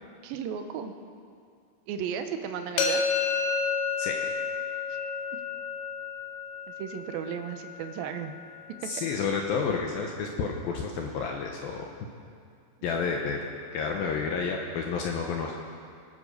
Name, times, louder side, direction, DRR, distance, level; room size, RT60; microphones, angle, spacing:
voice 1, 0.2-0.9 1.9-3.0 4.9-5.0 6.8-8.3, right 7 dB, 80° right, 7 dB, 2.2 m, -34 dB
sound 1, 2.8-8.6, left 5 dB, 60° left, 3.1 m, -31 dB
voice 2, 4.0-4.3 8.8-12.1 12.8-13.4 13.7-15.6, left 5 dB, 75° left, 1 dB, 2.3 m, -30 dB
22.5 x 9.1 x 6.5 m, 2.2 s
omnidirectional pair, 5.1 m